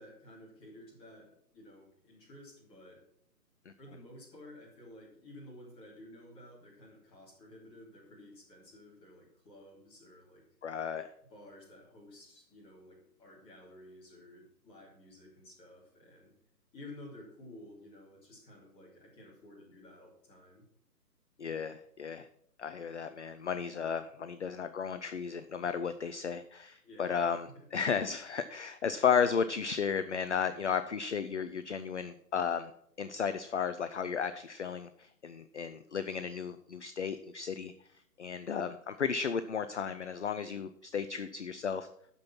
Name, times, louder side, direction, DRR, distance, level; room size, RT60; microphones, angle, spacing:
voice 1, 0.0-3.0 3.8-10.5 11.3-16.3 16.7-20.6 26.8-27.2 27.4-27.7, left 1 dB, 10° left, -4 dB, 2.7 m, -53 dB
voice 2, 10.6-11.1 21.4-22.3 22.6-32.7 33.0-37.7 38.2-41.9, left 6 dB, 45° left, 11 dB, 0.5 m, -34 dB
12.5 x 5.4 x 6.0 m, 0.69 s
figure-of-eight pair, 140°, 48 cm